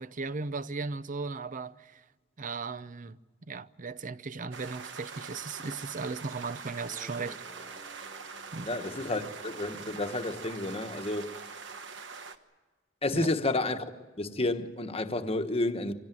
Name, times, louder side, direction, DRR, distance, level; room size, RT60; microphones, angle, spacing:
voice 1, 0.0-2.0 2.4-3.2 3.5-7.4 8.5-8.7 13.1-13.3, right 4 dB, 45° right, 0.6 m, -36 dB
sound 1, 4.5-12.4, right 5 dB, 65° right, 1.3 m, -44 dB
sound 2, 6.8-9.4, equal, 5° left, 1.5 m, -55 dB
voice 2, 8.6-11.4 13.0-13.8 14.2-15.9, left 2 dB, 30° left, 1.2 m, -30 dB
25.0 x 17.0 x 9.1 m
head